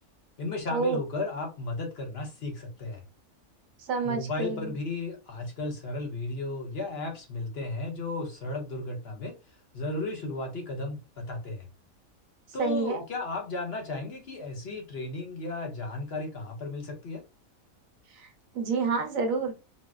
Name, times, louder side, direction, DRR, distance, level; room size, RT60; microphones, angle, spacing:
voice 1, 0.4-3.0 4.0-9.4 9.7-11.7 12.5-17.2, left 2 dB, 55° left, 1.0 m, -34 dB
voice 2, 3.8-4.8 12.6-13.0 18.2-18.3 18.5-19.5, right 4 dB, 80° right, 1.2 m, -28 dB
4.1 x 2.0 x 2.3 m
omnidirectional pair, 1.4 m